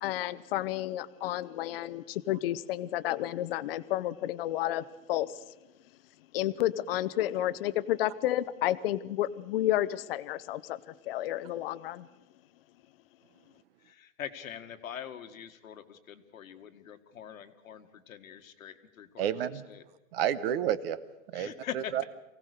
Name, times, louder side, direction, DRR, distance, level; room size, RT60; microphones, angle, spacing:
voice 1, 0.0-5.4 6.3-12.1, left 13 dB, 45° left, 16 dB, 0.8 m, -31 dB
voice 2, 13.8-19.3 19.7-19.8 21.3-22.0, left 9 dB, 85° left, 7 dB, 1.8 m, -43 dB
voice 3, 19.2-19.6 20.1-21.0 21.3-22.0, right 10 dB, 45° right, 15 dB, 1.1 m, -30 dB
23.5 x 17.0 x 6.7 m, 1.0 s
hypercardioid pair, 155°, 40 cm